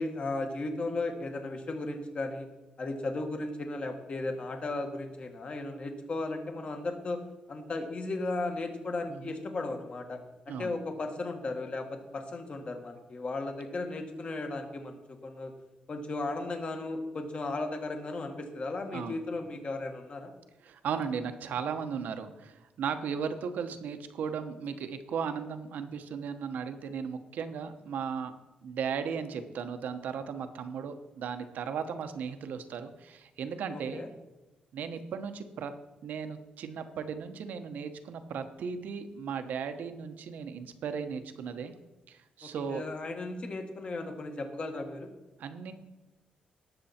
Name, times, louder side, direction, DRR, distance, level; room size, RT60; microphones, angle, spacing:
voice 1, 0.0-2.5 2.8-7.2 7.5-10.2 10.5-15.5 15.9-20.3 33.7-34.1 42.4-45.1, left 2 dB, 40° left, 4 dB, 1.9 m, -35 dB
voice 2, 20.6-28.3 28.6-34.0 34.7-35.7 36.0-41.7 42.1-42.8 45.4-45.7, right 6 dB, 80° right, 8 dB, 1.1 m, -36 dB
18.5 x 6.9 x 4.4 m, 1.1 s
cardioid pair, 105°, 3 cm